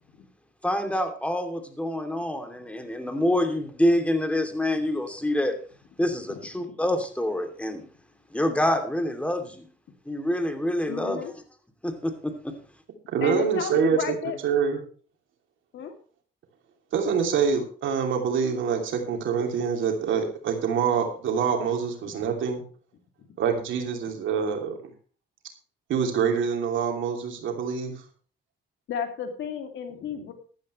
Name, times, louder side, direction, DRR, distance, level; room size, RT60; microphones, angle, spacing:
voice 1, 0.6-5.6 6.0-7.8 8.3-9.6 10.1-11.2 11.8-12.6, left 1 dB, 5° left, 6 dB, 2.8 m, -26 dB
voice 2, 10.9-11.3 13.2-14.4 15.7-15.9 22.0-22.3 23.2-23.3 28.9-30.3, left 7 dB, 70° left, 6 dB, 2.7 m, -33 dB
voice 3, 13.1-14.1 14.4-14.8 16.9-22.6 23.4-24.7 25.9-27.9, right 6 dB, 75° right, 3 dB, 3.0 m, -25 dB
14.5 x 12.0 x 3.2 m, 0.41 s
cardioid pair, 90°, 20 cm